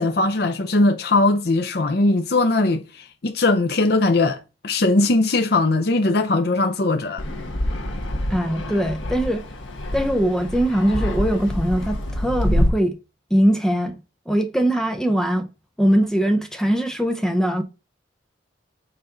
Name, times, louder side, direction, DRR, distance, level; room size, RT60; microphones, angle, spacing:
voice 1, 0.0-7.2, left 2 dB, 55° left, 0.6 m, -20 dB
Fixed-wing aircraft airplane, 7.2-12.7, left 1 dB, 85° left, 1.3 m, -26 dB
voice 2, 8.3-9.4 9.9-13.0 13.3-13.9 14.3-15.5 15.8-17.6, equal, 5° left, 0.7 m, -21 dB
6.8 x 4.1 x 3.8 m
head